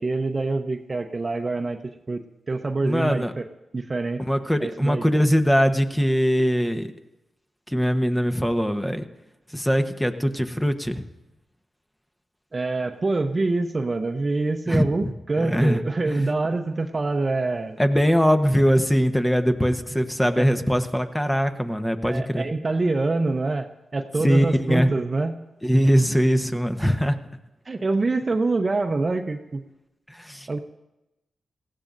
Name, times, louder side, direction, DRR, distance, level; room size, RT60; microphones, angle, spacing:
voice 1, 0.0-1.8 2.1-3.4 3.7-4.2 4.6-5.0 12.5-17.8 22.0-25.3 26.8-26.9 27.7-29.6 30.5-30.6, right 3 dB, 40° right, 5 dB, 0.8 m, -25 dB
voice 2, 2.8-3.3 4.3-6.9 7.7-9.0 9.5-11.0 14.7-15.1 15.4-16.3 17.8-22.5 24.2-24.9 25.6-27.2 30.1-30.6, equal, 10° left, 7 dB, 1.0 m, -22 dB
19.0 x 15.0 x 2.6 m, 0.96 s
supercardioid pair, 40°, 0 cm